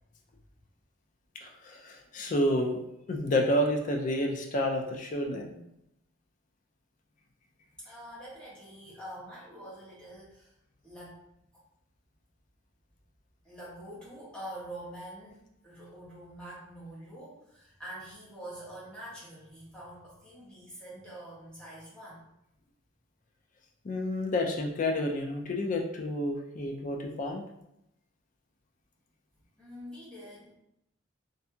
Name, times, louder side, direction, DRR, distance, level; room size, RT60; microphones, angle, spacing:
voice 1, 1.4-2.8 3.1-5.6 23.8-27.4, left 1 dB, 40° left, 1 dB, 0.4 m, -29 dB
voice 2, 7.8-10.5 10.8-11.2 11.5-11.6 13.4-22.3 29.6-30.5, right 1 dB, 5° left, -8 dB, 0.9 m, -45 dB
2.6 x 2.6 x 2.3 m, 0.81 s
head